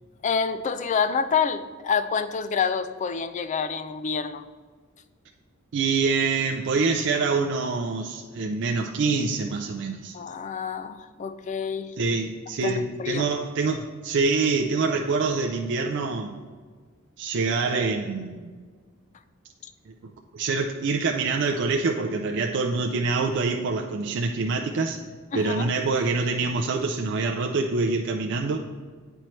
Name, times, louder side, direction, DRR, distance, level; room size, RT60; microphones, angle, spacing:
voice 1, 0.2-4.4 10.1-11.9 12.6-13.3 25.3-25.7, left 6 dB, 35° left, 11 dB, 0.3 m, -27 dB
voice 2, 5.7-10.2 12.0-16.3 17.2-18.6 19.9-20.0 20.3-25.0 25.3-28.6, right 4 dB, 55° right, 2 dB, 0.4 m, -25 dB
8.9 x 4.4 x 3.1 m, 1.5 s
head